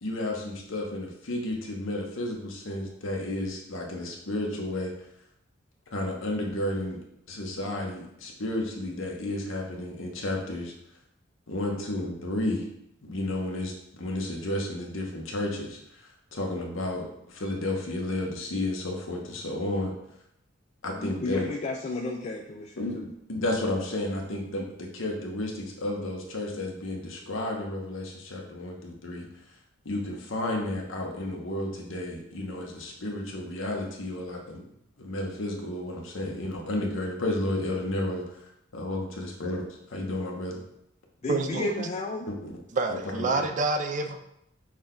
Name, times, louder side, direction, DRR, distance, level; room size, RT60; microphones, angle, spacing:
voice 1, 0.0-4.9 5.9-7.0 7.3-10.7 11.5-12.7 13.0-16.0 16.3-19.9 20.8-21.5 22.8-29.3 29.8-34.6 35.0-38.4 38.7-40.6 42.3-42.5 42.9-43.4, left 1 dB, 70° left, 0 dB, 0.9 m, -32 dB
voice 2, 21.0-23.1 41.2-42.3, left 2 dB, 35° left, 1 dB, 0.3 m, -33 dB
voice 3, 41.3-41.9 42.7-44.2, right 3 dB, 40° right, 7 dB, 0.4 m, -27 dB
6.1 x 2.3 x 3.7 m, 0.77 s
head